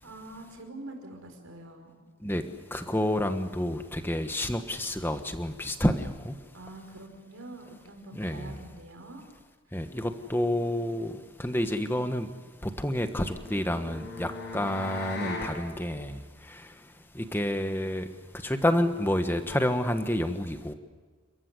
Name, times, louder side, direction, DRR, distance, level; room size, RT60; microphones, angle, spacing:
voice 1, 0.0-2.0 6.5-9.2 9.7-9.9 14.5-14.8, right 2 dB, 80° right, 3 dB, 5.2 m, -45 dB
voice 2, 2.7-6.3 8.1-8.5 9.7-11.1 11.4-12.3 12.6-16.2 17.1-18.0 18.4-20.7, left 1 dB, 10° left, 7 dB, 1.4 m, -29 dB
sound 1, 13.0-15.6, left 3 dB, 55° left, 6.8 m, -38 dB
29.5 x 14.5 x 9.7 m, 1.4 s
head